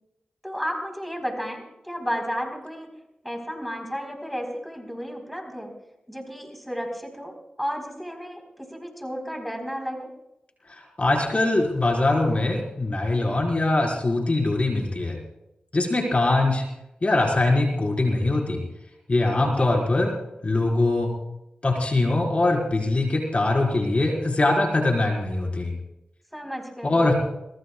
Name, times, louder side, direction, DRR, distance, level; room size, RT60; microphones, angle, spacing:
voice 1, 0.4-2.9 3.2-5.7 6.1-10.1 19.3-19.7 26.3-27.1, equal, ahead, 4 dB, 4.2 m, -33 dB
voice 2, 10.7-15.2 15.7-16.6 17.0-18.6 19.1-20.1 20.4-21.1 21.6-25.7 26.8-27.1, left 2 dB, 45° left, 0 dB, 4.7 m, -22 dB
23.0 x 22.0 x 2.4 m, 0.88 s
cardioid pair, 40°, 3 cm